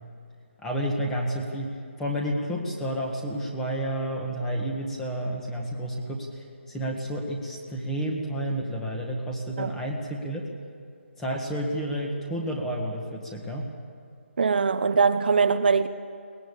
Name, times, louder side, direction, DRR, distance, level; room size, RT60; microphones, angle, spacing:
voice 1, 0.6-10.5 11.2-13.7, right 1 dB, 5° left, 1.6 m, -30 dB
voice 2, 14.4-15.9, right 5 dB, 50° right, 0.8 m, -22 dB
23.0 x 19.5 x 8.3 m
hypercardioid pair, 170°, 7 cm